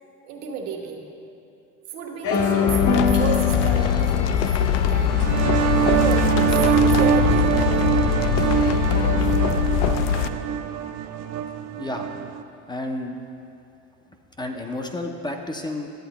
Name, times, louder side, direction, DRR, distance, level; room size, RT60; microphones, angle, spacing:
voice 1, 0.2-1.1 1.9-5.2 5.9-7.6, right 5 dB, 90° right, -1 dB, 1.2 m, -32 dB
sound 1, 2.2-9.6, left 5 dB, 40° left, 0.8 m, -27 dB
sound 2, 2.7-10.3, left 9 dB, 70° left, 0.5 m, -22 dB
sound 3, 5.0-12.4, right 8 dB, 50° right, 0.4 m, -23 dB
voice 2, 12.7-13.1 14.4-15.9, left 1 dB, 15° left, 3 dB, 0.4 m, -30 dB
11.5 x 7.9 x 2.9 m, 2.6 s
supercardioid pair, 115°, 35 cm